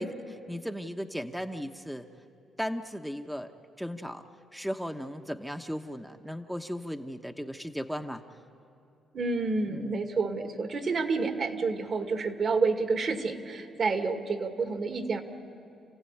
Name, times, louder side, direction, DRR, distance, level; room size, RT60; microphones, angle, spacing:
voice 1, 0.0-2.1 2.6-3.5 3.8-4.2 4.5-8.2 9.7-10.0, equal, ahead, 5 dB, 1.1 m, -36 dB
voice 2, 9.1-15.2, right 4 dB, 55° right, 6 dB, 2.2 m, -29 dB
28.5 x 15.5 x 9.9 m, 2.6 s
supercardioid pair, 65°, 0 cm